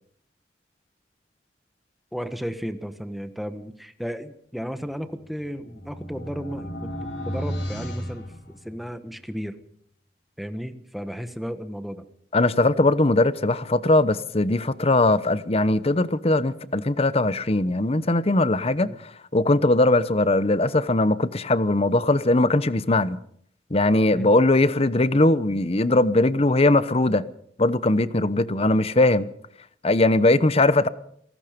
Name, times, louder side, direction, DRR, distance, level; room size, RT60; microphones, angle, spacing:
voice 1, 2.1-9.6 10.4-12.0 18.8-19.0 24.1-24.4 28.1-28.4, equal, ahead, 1.4 m, -34 dB
sound 1, 5.1-9.1, equal, 80° left, 5.4 m, -34 dB
voice 2, 12.3-18.9 19.3-23.2 23.7-27.3 27.6-29.3 29.8-30.9, left 2 dB, 35° left, 0.9 m, -20 dB
27.5 x 18.5 x 5.2 m
head